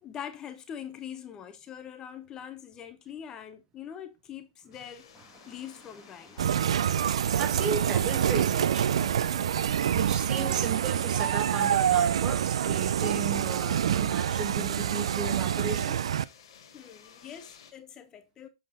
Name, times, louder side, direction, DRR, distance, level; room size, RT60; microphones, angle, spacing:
voice 1, 0.0-5.1 5.5-6.5 16.7-18.5, left 9 dB, 20° left, 0.7 m, -43 dB
sound 1, 4.7-17.7, left 8 dB, 65° left, 1.9 m, -55 dB
sound 2, 5.1-11.4, right 1 dB, 5° right, 1.4 m, -54 dB
sound 3, 6.4-16.2, right 9 dB, 85° right, 0.4 m, -26 dB
voice 2, 7.1-9.4 9.9-16.0, right 5 dB, 25° right, 0.9 m, -35 dB
7.6 x 3.6 x 4.1 m
hypercardioid pair, 145°, 3 cm